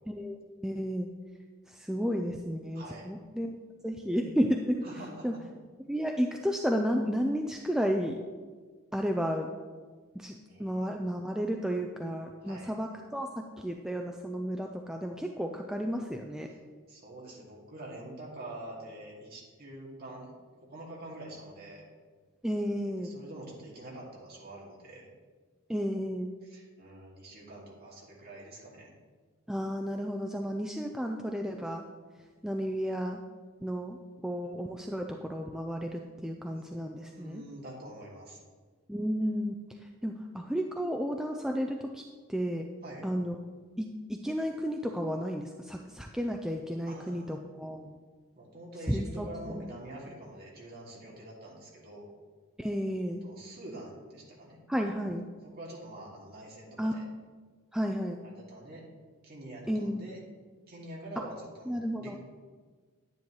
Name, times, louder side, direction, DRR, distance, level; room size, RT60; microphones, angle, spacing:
voice 1, 0.1-1.1 1.7-3.6 3.8-4.8 5.2-5.3 5.9-8.2 8.9-9.5 10.2-13.3 13.6-16.5 22.4-23.1 25.7-26.3 29.5-31.8 32.4-33.2 33.6-34.0 34.2-37.4 38.9-39.5 40.0-42.0 42.3-42.7 43.0-43.3 43.8-48.0 48.9-49.3 49.5-49.7 52.6-53.2 54.7-55.2 56.8-57.0 57.7-58.2 59.7-60.1 61.2-61.3 61.7-62.2, equal, 5° right, 2 dB, 0.3 m, -32 dB
voice 2, 2.7-3.1 4.8-5.4 10.5-10.9 12.4-12.7 16.5-16.6 16.9-20.3 20.6-21.8 23.0-25.1 26.4-28.9 36.5-36.6 37.1-38.4 42.8-43.1 46.9-47.4 48.4-52.1 53.2-54.6 55.4-57.0 58.2-58.8 59.2-60.2 60.7-62.2, right 1 dB, 45° right, -4 dB, 2.3 m, -46 dB
10.5 x 9.5 x 3.1 m, 1.5 s
head